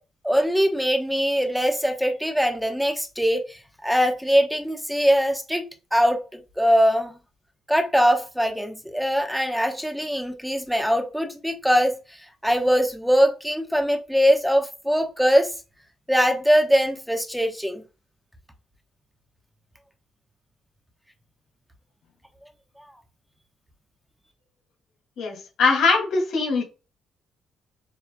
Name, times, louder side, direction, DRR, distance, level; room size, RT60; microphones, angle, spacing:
voice 1, 0.2-5.6 5.9-7.1 7.7-11.9 12.4-15.5 16.1-17.8 22.8-22.9, equal, ahead, 1.0 m, -22 dB
voice 2, 25.2-26.6, left 4 dB, 85° left, 2.3 m, -21 dB
7.1 x 3.2 x 2.2 m
cardioid pair, 90°, 0 cm